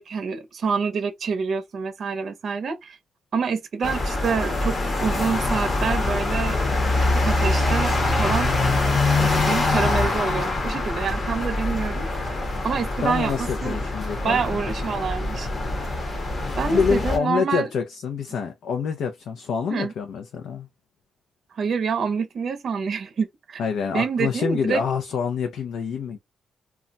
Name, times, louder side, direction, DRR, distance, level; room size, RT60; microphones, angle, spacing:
voice 1, 0.0-3.0 3.3-4.8 5.0-6.6 7.0-8.5 9.2-12.4 12.6-13.8 14.2-15.5 16.6-17.7 19.7-19.9 21.5-23.6 23.9-24.8, right 5 dB, 50° right, 0.6 m, -27 dB
sound 1, 3.8-17.2, left 2 dB, 30° left, 0.8 m, -24 dB
voice 2, 13.0-14.6 16.3-20.7 23.6-26.2, left 6 dB, 85° left, 0.5 m, -26 dB
2.3 x 2.1 x 3.9 m
wide cardioid pair, 145°, 0 cm